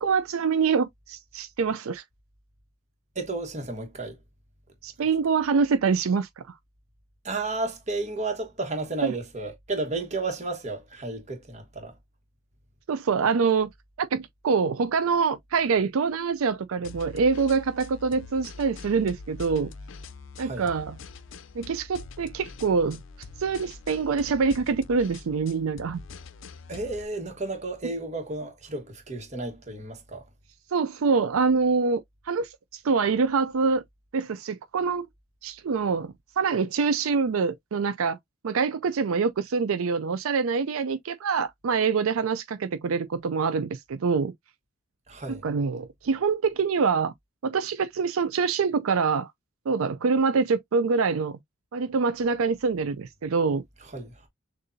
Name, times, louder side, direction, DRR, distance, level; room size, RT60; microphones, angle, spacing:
voice 1, 0.0-2.0 4.8-6.6 9.0-9.1 12.9-13.7 14.0-19.7 20.4-21.0 21.5-23.0 23.4-26.0 30.7-33.8 34.1-35.0 35.4-38.2 38.4-44.3 45.3-47.1 47.4-49.3 49.7-51.4 51.7-53.6, right 5 dB, 80° right, 0.4 m, -25 dB
voice 2, 3.1-4.2 7.2-12.0 20.4-20.7 26.7-30.3 45.1-45.4 53.9-54.3, right 2 dB, 35° right, 1.4 m, -32 dB
sound 1, 16.8-27.1, left 4 dB, 65° left, 0.5 m, -44 dB
6.5 x 2.6 x 2.6 m
head